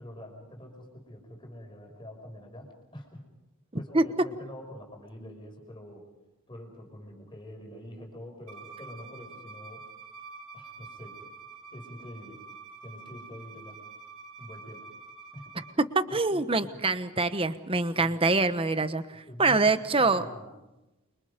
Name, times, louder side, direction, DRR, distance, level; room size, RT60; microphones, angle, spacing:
voice 1, 0.0-3.2 3.7-6.1 6.5-9.9 10.5-11.2 11.7-12.4 12.8-13.8 14.4-14.9 15.3-15.7 16.3-16.8 19.1-20.5, equal, 20° left, 2 dB, 6.1 m, -45 dB
Bowed string instrument, 8.5-15.8, right 4 dB, 75° right, 3.4 m, -47 dB
voice 2, 15.9-20.2, right 3 dB, 25° right, 11 dB, 1.1 m, -25 dB
29.5 x 25.0 x 5.2 m, 0.99 s
head